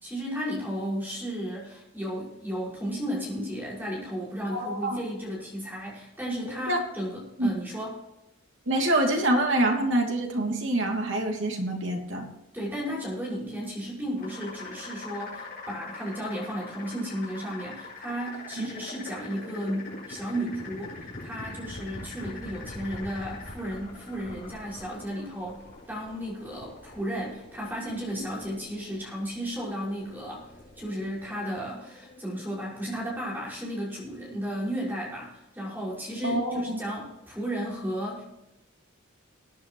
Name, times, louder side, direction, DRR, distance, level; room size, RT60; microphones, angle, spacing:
voice 1, 0.0-7.9 12.5-25.6 25.9-30.5 30.8-38.3, equal, 10° right, -5 dB, 5.8 m, -34 dB
voice 2, 4.5-5.0 6.7-6.8 7.4-7.5 8.7-12.3 18.6-18.7 36.2-36.8, right 1 dB, 65° right, 1 dB, 2.9 m, -26 dB
sound 1, 14.2-32.9, left 2 dB, 45° left, 5.8 m, -43 dB
21.5 x 9.8 x 3.1 m, 0.92 s
head